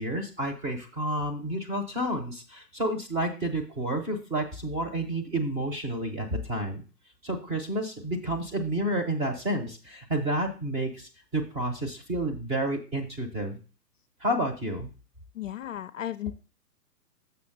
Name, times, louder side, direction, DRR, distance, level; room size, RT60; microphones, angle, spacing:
voice 1, 0.0-6.8 7.2-13.6 14.2-14.9, right 1 dB, 15° right, 2 dB, 0.8 m, -30 dB
voice 2, 15.4-16.3, left 12 dB, 55° left, 11 dB, 0.5 m, -34 dB
6.9 x 5.7 x 3.9 m, 0.34 s
figure-of-eight pair, 125°, 48 cm